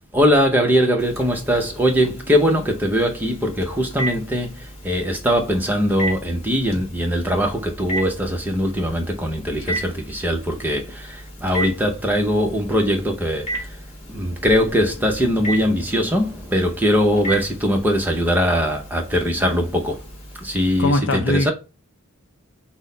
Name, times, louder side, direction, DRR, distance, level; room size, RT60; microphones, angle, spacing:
voice 1, 0.1-13.8 14.1-20.0 20.4-21.5, equal, 10° right, 0.7 m, -21 dB
Telephone, 1.0-20.8, right 1 dB, 30° left, 1.2 m, -35 dB
voice 2, 20.8-21.5, left 1 dB, 55° left, 0.5 m, -20 dB
6.2 x 2.1 x 3.8 m
head